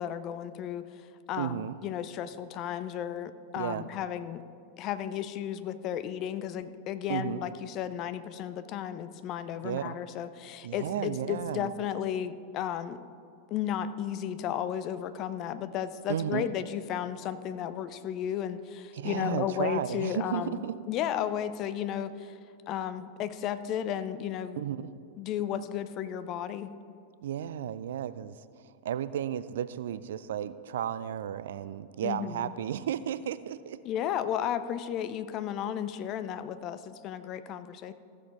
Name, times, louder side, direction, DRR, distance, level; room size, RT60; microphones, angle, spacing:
voice 1, 0.0-4.4 4.8-13.0 13.5-22.4 22.7-24.6 25.2-26.7 32.0-32.5 33.8-37.9, left 10 dB, 35° left, 12 dB, 0.5 m, -34 dB
voice 2, 1.4-1.8 3.6-3.9 7.1-7.5 9.6-10.0 10.6-11.7 16.1-16.5 18.9-20.7 24.6-24.9 27.2-28.4 28.8-33.8, right 10 dB, 60° right, 15 dB, 0.3 m, -33 dB
14.5 x 6.4 x 4.9 m, 2.4 s
figure-of-eight pair, 90°, 0 cm